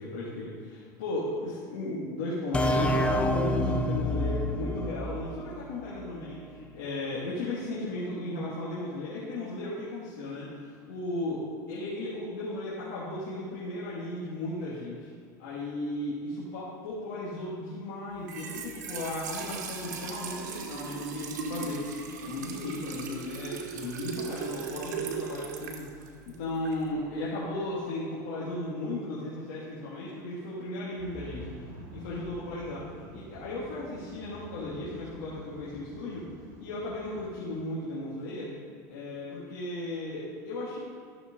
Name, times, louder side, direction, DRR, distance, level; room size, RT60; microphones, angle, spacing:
voice 1, 0.0-15.1 15.4-21.9 22.2-32.9 33.1-36.3 36.6-38.5 38.9-40.8, left 2 dB, 80° left, -8 dB, 2.5 m, -35 dB
sound 1, 2.5-6.1, left 1 dB, 10° left, 0.7 m, -28 dB
Trickle dribble / Fill (with liquid), 18.1-26.9, right 5 dB, 90° right, 1.3 m, -38 dB
sound 2, 31.0-37.3, right 2 dB, 50° right, 1.7 m, -47 dB
13.5 x 6.6 x 3.9 m, 2.2 s
supercardioid pair, 125°, 9 cm